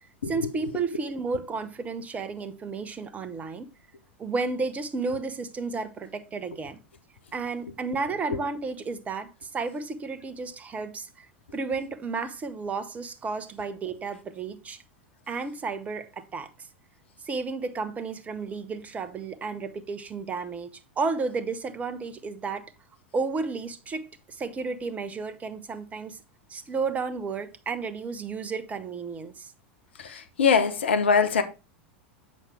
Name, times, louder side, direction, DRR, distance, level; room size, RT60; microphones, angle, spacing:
voice 1, 0.3-3.7 4.2-6.8 7.3-11.3 11.5-14.8 15.3-16.5 17.2-20.7 21.0-22.7 23.1-26.2 26.5-29.5, right 4 dB, 25° right, 0.9 m, -32 dB
voice 2, 30.0-31.4, left 5 dB, 70° left, 0.9 m, -22 dB
7.4 x 6.4 x 3.3 m
figure-of-eight pair, 85°, 6 cm